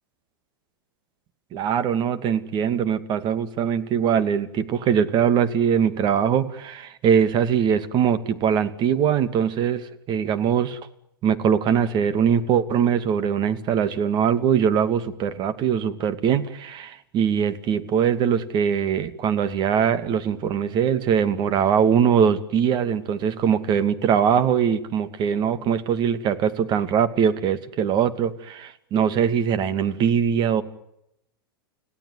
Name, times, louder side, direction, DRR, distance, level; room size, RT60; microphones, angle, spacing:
voice 1, 1.5-10.8 11.2-30.6, right 8 dB, 35° right, 11 dB, 2.5 m, -22 dB
30.0 x 17.0 x 9.6 m, 0.81 s
hypercardioid pair, 110°, 12 cm